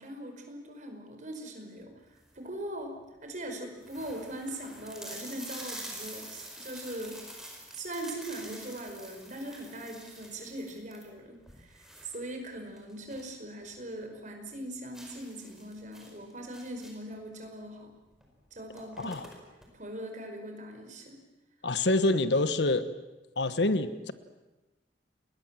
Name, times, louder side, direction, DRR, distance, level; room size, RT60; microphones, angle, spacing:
voice 1, 0.0-3.0 3.2-7.2 7.7-17.9 18.5-19.2 19.7-21.2, right 1 dB, 45° right, 4 dB, 5.2 m, -41 dB
sound 1, 2.0-2.5 3.1-3.2 3.4-3.5 3.8-13.4 13.7-13.8 14.2-14.3 14.9-17.2 18.1-18.3 18.5-19.7, right 1 dB, 5° right, 5.0 m, -46 dB
voice 2, 19.0-19.3 21.6-22.9 23.4-24.1, left 2 dB, 75° left, 12 dB, 1.3 m, -26 dB
29.0 x 21.5 x 7.6 m, 1.1 s
head